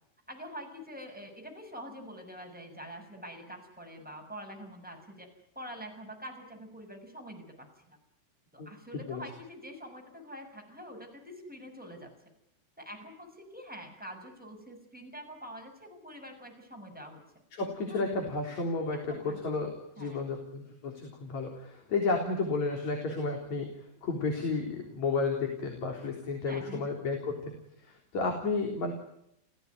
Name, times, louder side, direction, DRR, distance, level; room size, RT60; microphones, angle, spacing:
voice 1, 0.3-5.3 5.5-8.0 8.5-12.1 12.8-17.2 17.9-18.0 19.1-19.4 20.0-20.2 26.4-26.9, equal, ahead, 4 dB, 6.5 m, -45 dB
voice 2, 17.5-23.7 24.0-27.6 27.8-28.9, left 3 dB, 60° left, 3 dB, 4.9 m, -32 dB
29.5 x 17.5 x 9.6 m, 0.78 s
omnidirectional pair, 3.6 m